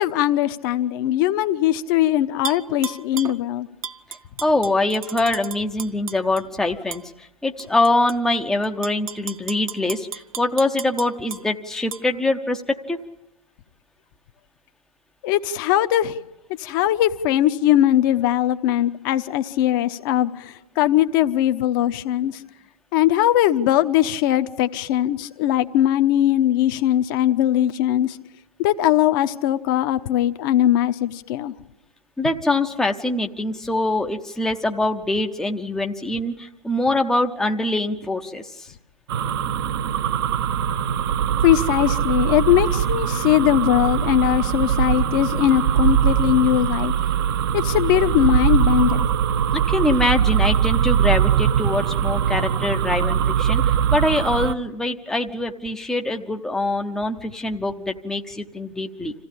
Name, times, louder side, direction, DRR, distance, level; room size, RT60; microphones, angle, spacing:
voice 1, 0.0-3.7 15.2-16.2 16.6-22.4 22.9-28.2 28.6-31.5 41.4-46.9 47.5-49.1, left 12 dB, 35° left, 10 dB, 1.0 m, -20 dB
Tap / Glass, 2.4-3.4 3.8-6.4 6.9-7.0 7.6-8.2 8.6-11.4 11.9-12.0, right 6 dB, 65° right, 0.7 m, -34 dB
voice 2, 4.4-13.0 32.2-38.7 49.5-59.1, left 2 dB, 5° left, 3 dB, 0.8 m, -24 dB
sound 1, 39.1-54.5, right 8 dB, 40° right, 0.9 m, -21 dB
27.0 x 15.0 x 8.7 m, 0.93 s
figure-of-eight pair, 110°, 19 cm